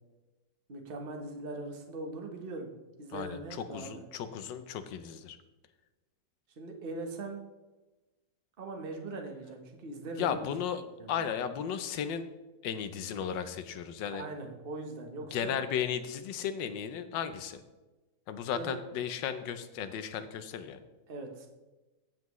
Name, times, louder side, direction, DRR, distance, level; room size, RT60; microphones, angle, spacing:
voice 1, 0.7-2.7 3.0-4.0 6.6-7.4 8.6-10.5 11.0-11.2 14.1-15.6 18.4-18.8 21.1-21.5, right 2 dB, 35° right, 3 dB, 1.1 m, -40 dB
voice 2, 3.1-5.4 10.2-10.8 11.1-12.3 12.6-14.3 15.3-17.6 18.3-20.8, left 8 dB, 80° left, 10 dB, 1.4 m, -35 dB
16.5 x 5.8 x 3.1 m, 1.1 s
omnidirectional pair, 2.0 m